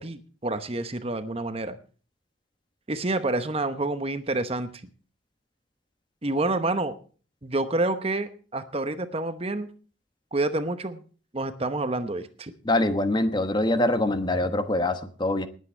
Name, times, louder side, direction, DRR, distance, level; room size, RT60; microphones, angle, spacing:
voice 1, 0.0-1.8 2.9-4.7 6.2-7.0 7.4-9.7 10.3-11.0 11.3-12.5, right 2 dB, 30° right, 11 dB, 0.9 m, -28 dB
voice 2, 12.7-15.5, left 1 dB, 25° left, 10 dB, 1.0 m, -24 dB
20.0 x 8.4 x 4.4 m, 0.39 s
head